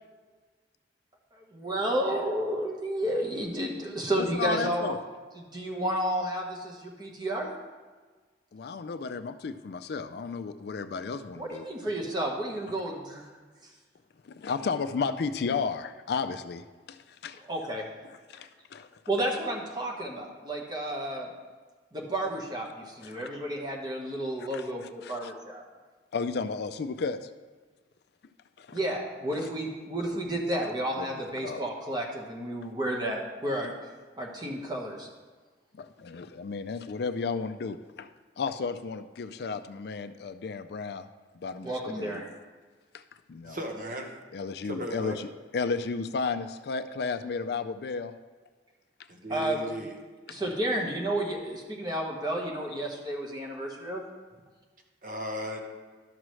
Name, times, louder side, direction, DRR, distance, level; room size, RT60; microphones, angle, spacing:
voice 1, 1.3-4.9 5.4-7.5 11.4-13.3 17.5-17.9 19.1-21.3 21.9-25.6 28.7-33.7 34.2-35.1 41.6-42.3 49.3-49.6 50.3-54.0, right 1 dB, 25° right, -1 dB, 1.2 m, -31 dB
voice 2, 4.2-5.0 8.5-11.7 14.2-17.4 18.1-19.0 23.0-23.2 24.5-24.7 25.0-25.3 26.1-27.3 28.6-28.8 29.4-29.5 30.3-30.4 31.0-31.1 31.4-31.6 35.7-38.1 38.4-41.1 41.4-42.2 42.9-43.0 43.3-43.6 44.3-45.3 45.5-48.1 49.4-49.5 50.3-50.4, left 4 dB, 60° left, 10 dB, 0.4 m, -33 dB
voice 3, 43.4-44.1 44.6-45.2 49.1-49.9 55.0-55.6, equal, 50° right, 1 dB, 1.2 m, -36 dB
12.0 x 6.2 x 3.2 m, 1.4 s
head